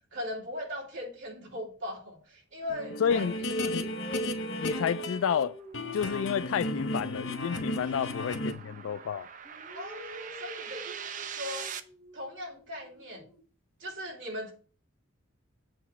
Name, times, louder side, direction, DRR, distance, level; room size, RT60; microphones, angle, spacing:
voice 1, 0.1-3.9 7.8-8.1 9.7-11.7 12.1-13.3 13.8-14.5, left 1 dB, 60° right, 2.6 m, -39 dB
sound 1, 2.6-2.9 3.7-9.0 9.4-13.4, right 3 dB, 5° left, 1.4 m, -47 dB
sound 2, 2.7-5.4 5.7-8.5, left 1 dB, 55° left, 0.7 m, -34 dB
voice 2, 3.0-3.3 3.7-3.9 4.6-5.6 5.9-9.3, left 7 dB, 75° left, 0.3 m, -30 dB
sound 3, 4.9-11.8, right 7 dB, 35° right, 0.4 m, -44 dB
7.8 x 3.1 x 6.1 m
head